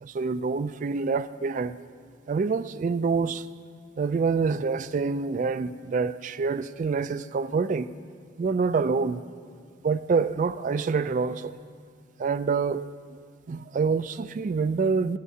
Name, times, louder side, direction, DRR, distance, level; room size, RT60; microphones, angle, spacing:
voice 1, 0.0-1.8 2.3-3.5 4.0-7.9 8.4-9.2 9.8-11.6 12.2-13.2 13.5-15.2, right 4 dB, 40° right, 0.3 m, -26 dB
28.5 x 11.5 x 2.8 m
head